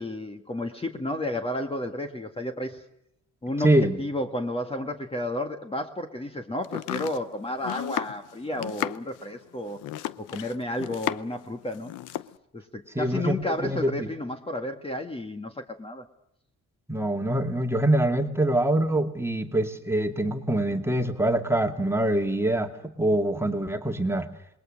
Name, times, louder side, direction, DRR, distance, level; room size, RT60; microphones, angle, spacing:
voice 1, 0.0-2.8 3.4-9.8 10.3-11.9 12.5-16.0, left 1 dB, 20° left, 5 dB, 1.8 m, -32 dB
voice 2, 3.6-4.0 12.9-14.1 16.9-22.7 23.0-24.3, right 1 dB, 10° right, 4 dB, 2.2 m, -24 dB
Domestic sounds home sounds, 6.6-11.4 11.7-12.3, left 14 dB, 85° left, 0.8 m, -34 dB
27.0 x 21.0 x 6.5 m, 0.76 s
cardioid pair, 90°, 30 cm